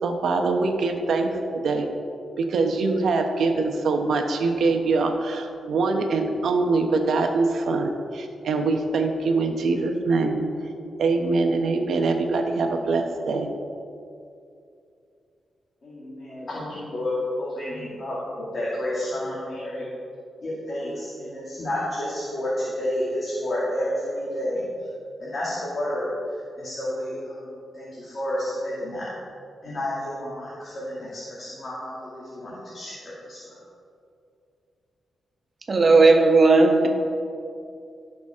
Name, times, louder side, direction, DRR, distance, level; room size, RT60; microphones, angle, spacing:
voice 1, 0.0-1.9 2.4-10.4 11.0-13.5, right 3 dB, 75° right, 4 dB, 1.1 m, -23 dB
voice 2, 15.8-19.9 20.4-24.6 25.2-26.1 26.6-29.1 29.6-33.4, left 1 dB, 45° left, -8 dB, 2.6 m, -30 dB
voice 3, 35.7-36.9, right 3 dB, 40° right, 2 dB, 1.4 m, -15 dB
16.5 x 6.2 x 3.8 m, 2.5 s
wide cardioid pair, 115°, 0 cm